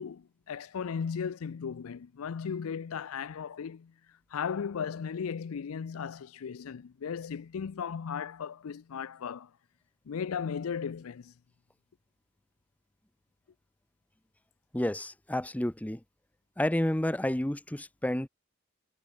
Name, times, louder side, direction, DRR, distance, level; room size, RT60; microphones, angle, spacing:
voice 1, 0.0-3.9 4.3-9.5 10.1-11.3, left 6 dB, 85° left, 0.5 m, -36 dB
voice 2, 14.7-16.0 16.6-18.3, left 1 dB, 5° left, 0.6 m, -30 dB
head